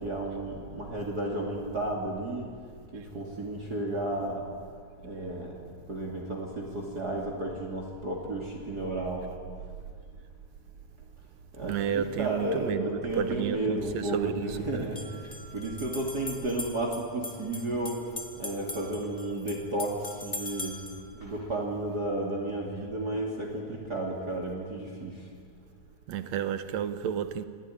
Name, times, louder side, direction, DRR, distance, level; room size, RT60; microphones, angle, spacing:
voice 1, 0.0-2.5 2.9-4.4 5.0-5.5 5.9-9.4 11.5-18.0 18.4-20.8 21.1-25.2, right 1 dB, 35° right, 3.0 m, -33 dB
voice 2, 3.0-3.3 11.6-14.9 26.1-27.5, right 8 dB, 70° right, 2.2 m, -32 dB
sound 1, 13.2-13.3 14.8-21.0, left 2 dB, 15° left, 1.7 m, -41 dB
28.0 x 18.0 x 10.0 m
omnidirectional pair, 3.4 m